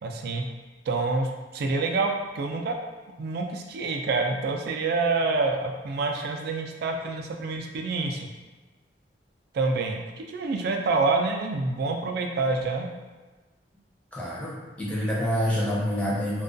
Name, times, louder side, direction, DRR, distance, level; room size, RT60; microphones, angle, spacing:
voice 1, 0.0-0.5 0.9-2.8 3.2-8.3 9.5-12.9, right 3 dB, 60° right, 3 dB, 0.3 m, -27 dB
voice 2, 14.1-16.4, equal, 5° left, -7 dB, 0.6 m, -27 dB
2.3 x 2.2 x 2.5 m, 1.3 s
head